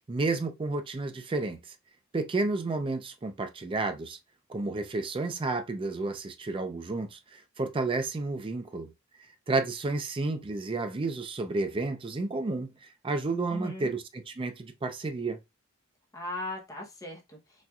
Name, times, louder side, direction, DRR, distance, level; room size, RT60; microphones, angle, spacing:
voice 1, 0.1-1.7 2.1-4.2 4.5-8.9 9.5-15.4, right 3 dB, 25° right, 0.4 m, -31 dB
voice 2, 13.5-13.9 16.1-17.6, left 1 dB, 15° left, 0.7 m, -38 dB
4.1 x 2.3 x 2.3 m
head